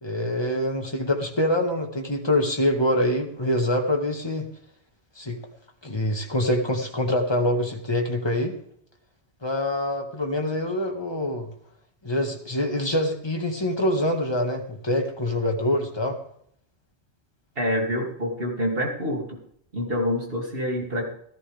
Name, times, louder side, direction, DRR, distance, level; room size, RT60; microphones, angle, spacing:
voice 1, 0.0-4.5 5.2-5.4 5.8-8.6 9.4-11.5 12.0-16.2, left 1 dB, 25° left, 2 dB, 1.9 m, -25 dB
voice 2, 17.6-19.4 19.7-21.0, equal, 55° right, 0 dB, 3.0 m, -27 dB
15.5 x 14.0 x 3.5 m, 0.68 s
omnidirectional pair, 1.1 m